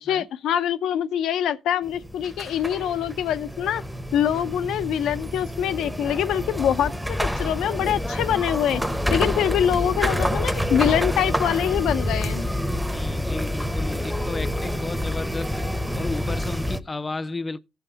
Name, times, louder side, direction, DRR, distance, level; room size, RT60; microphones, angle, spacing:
voice 1, 0.0-3.8 4.1-6.9 7.4-8.8 9.1-12.5, left 10 dB, 80° left, 0.6 m, -24 dB
sound 1, 1.8-16.8, equal, ahead, 0.8 m, -27 dB
voice 2, 12.9-15.6 15.9-17.6, left 3 dB, 25° left, 0.5 m, -33 dB
15.0 x 5.8 x 3.9 m
cardioid pair, 90°, 0 cm